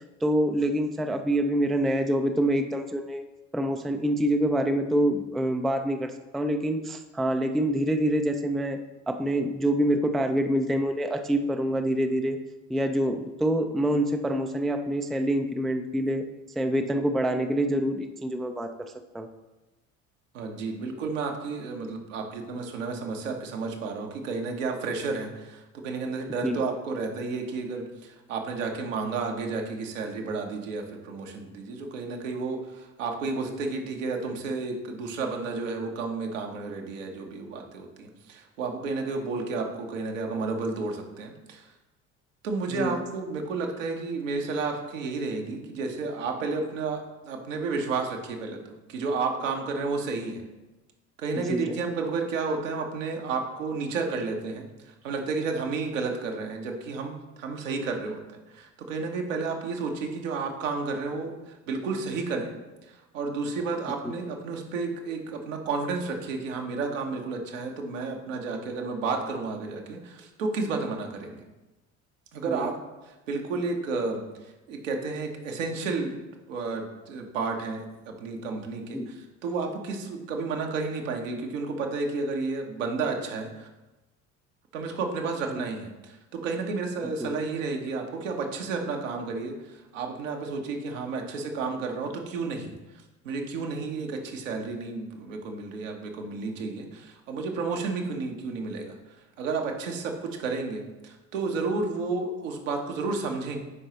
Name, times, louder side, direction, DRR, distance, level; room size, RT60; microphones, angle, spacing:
voice 1, 0.0-3.2 3.5-8.8 9.1-12.4 12.7-16.2 16.6-19.3 26.4-26.6 42.7-42.9 51.3-51.8 72.5-72.7 78.9-79.1 85.5-85.6 87.0-87.3, right 1 dB, ahead, 6 dB, 0.3 m, -26 dB
voice 2, 20.3-41.7 42.4-50.4 51.2-62.5 62.9-71.4 72.3-72.8 73.0-76.2 76.5-83.7 84.7-92.7 93.2-103.6, right 4 dB, 75° right, 2 dB, 1.1 m, -32 dB
9.9 x 4.8 x 3.0 m, 1.1 s
figure-of-eight pair, 55°, 39 cm